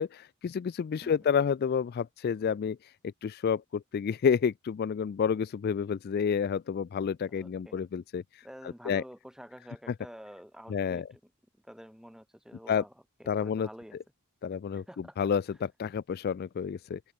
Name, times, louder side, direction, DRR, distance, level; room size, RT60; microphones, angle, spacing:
voice 1, 0.0-2.9 3.2-8.2 8.9-9.0 10.7-11.0 12.7-12.8 13.3-13.7 14.4-14.8 15.2-17.0, left 7 dB, 45° left, 0.3 m, -29 dB
voice 2, 7.3-7.7 8.4-11.2 11.6-12.9 13.2-14.0 14.7-15.2, equal, 5° right, 3.1 m, -49 dB
open air
head